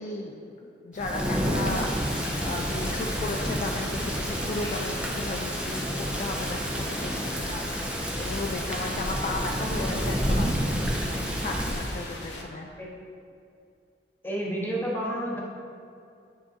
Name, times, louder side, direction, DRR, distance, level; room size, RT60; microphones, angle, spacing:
voice 1, 0.0-2.1 2.4-10.8 11.4-12.7, left 2 dB, 45° left, 1 dB, 0.3 m, -35 dB
Thunder / Rain, 0.9-12.0, equal, 5° right, 0.5 m, -29 dB
sound 1, 1.7-12.4, left 2 dB, 75° left, 0.7 m, -39 dB
voice 2, 14.2-15.4, right 1 dB, 10° left, -4 dB, 0.9 m, -30 dB
9.5 x 3.7 x 2.7 m, 2.5 s
head